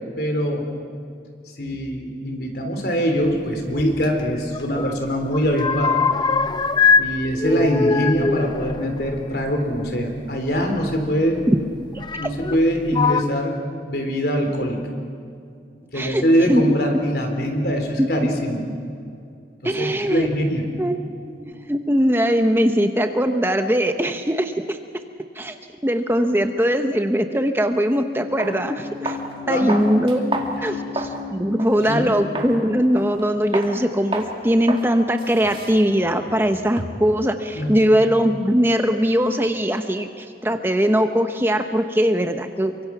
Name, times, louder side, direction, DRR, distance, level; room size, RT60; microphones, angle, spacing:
voice 1, 0.2-0.7 1.6-6.1 6.9-11.4 12.2-13.6 13.9-14.8 15.9-18.6 19.8-20.6 29.5-29.9 30.6-30.8 31.9-32.1 37.5-37.9, equal, 60° left, 4 dB, 3.7 m, -23 dB
sound 1, 4.0-5.0 5.2-7.1 7.4-9.9 10.9-11.0 12.0-12.6 12.9-13.2, left 5 dB, 25° left, 0.6 m, -22 dB
voice 2, 19.6-20.3 20.8-21.0 21.3-24.8 25.4-25.5 25.8-29.2 29.5-30.2 30.6-42.7, equal, 15° right, 6 dB, 0.8 m, -20 dB
sound 2, 27.8-27.9 28.4-28.6 29.1-29.3 29.7-31.2 31.6-31.7 32.3-32.6 33.0-33.2 33.5-33.7 34.1-34.3 34.7-34.9 35.2-37.1, right 2 dB, 30° right, 2.3 m, -30 dB
sound 3, 28.0-33.0, left 3 dB, 10° left, 3.8 m, -33 dB
28.5 x 24.0 x 6.0 m, 2.4 s
head